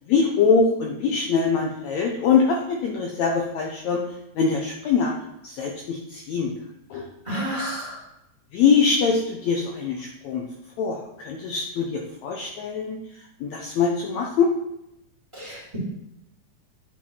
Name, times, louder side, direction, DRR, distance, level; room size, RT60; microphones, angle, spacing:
voice 1, 0.1-4.0 4.4-5.1 5.4-6.5 6.9-7.1 8.5-10.4 10.8-13.0 13.4-14.5, left 5 dB, 70° left, 0 dB, 1.9 m, -23 dB
voice 2, 7.2-8.0 15.3-15.8, equal, 10° right, -7 dB, 2.8 m, -30 dB
10.5 x 4.5 x 4.0 m, 0.84 s
omnidirectional pair, 3.7 m